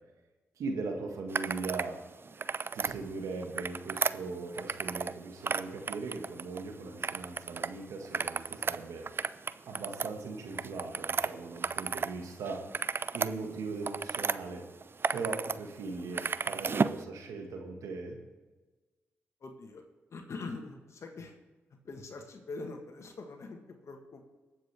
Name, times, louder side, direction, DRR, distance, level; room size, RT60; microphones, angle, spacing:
voice 1, 0.6-2.0 2.7-9.1 9.7-12.6 13.1-14.6 15.1-18.2, right 3 dB, 75° right, 3 dB, 1.8 m, -39 dB
sound 1, 1.3-1.9 2.3-2.9 3.4-5.2 5.4-6.6 7.0-7.7 8.0-12.1 12.4-14.4 14.8-15.6 15.8-17.0, right 5 dB, 45° right, 0.5 m, -33 dB
voice 2, 19.4-19.8 20.1-21.3 21.8-24.2, left 3 dB, 60° left, 4 dB, 1.5 m, -43 dB
19.5 x 7.5 x 3.5 m, 1.2 s
supercardioid pair, 40°, 5 cm